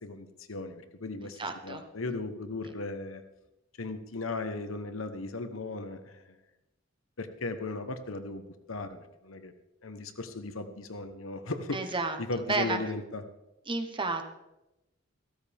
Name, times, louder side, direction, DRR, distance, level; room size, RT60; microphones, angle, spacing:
voice 1, 0.0-3.2 3.8-6.2 7.2-9.5 9.8-11.8 12.2-13.2, left 3 dB, 90° left, 9 dB, 1.1 m, -37 dB
voice 2, 1.2-1.8 2.6-2.7 11.7-12.2 12.5-12.8 13.7-14.2, right 3 dB, 25° right, 6 dB, 1.3 m, -31 dB
15.0 x 13.0 x 3.6 m, 0.96 s
head